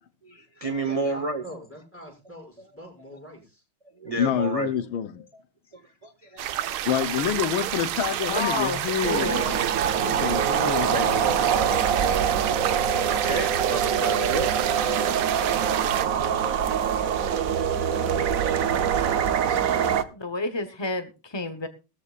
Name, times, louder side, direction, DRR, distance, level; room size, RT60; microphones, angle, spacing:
voice 1, 0.2-1.4 4.0-4.7 5.7-6.8 10.7-12.0 13.0-14.5, right 3 dB, 25° right, 0.8 m, -31 dB
voice 2, 0.9-3.6, equal, 5° left, 6.6 m, -44 dB
voice 3, 4.2-5.3 6.9-9.6 9.9-11.2, left 9 dB, 80° left, 1.7 m, -27 dB
sound 1, 6.4-16.1, right 11 dB, 85° right, 1.7 m, -29 dB
voice 4, 8.2-9.4 20.1-21.7, left 3 dB, 35° left, 0.4 m, -30 dB
sound 2, 9.0-20.0, right 8 dB, 55° right, 1.0 m, -24 dB
17.5 x 14.0 x 2.4 m
omnidirectional pair, 2.2 m